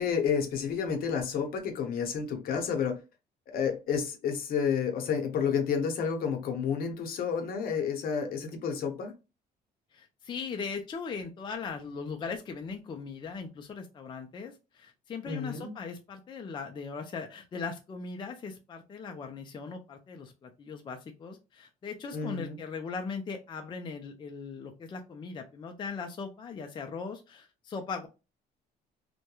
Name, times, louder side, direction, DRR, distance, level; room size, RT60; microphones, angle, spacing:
voice 1, 0.0-3.0 3.5-9.1 15.3-15.7 22.1-22.6, left 6 dB, 60° left, 0.7 m, -30 dB
voice 2, 9.9-28.1, left 5 dB, 30° left, 0.4 m, -39 dB
2.2 x 2.1 x 2.9 m
cardioid pair, 110°, 17 cm